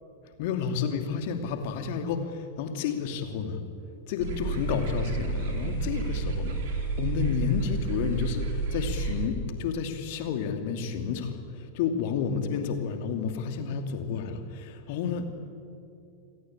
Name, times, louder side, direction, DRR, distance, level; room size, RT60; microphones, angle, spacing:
voice 1, 0.4-3.6 4.1-15.3, left 6 dB, 50° left, 6 dB, 2.6 m, -31 dB
sound 1, 4.2-9.3, right 3 dB, 55° right, 4.2 m, -31 dB
27.5 x 18.0 x 8.7 m, 2.6 s
figure-of-eight pair, 90°, 0 cm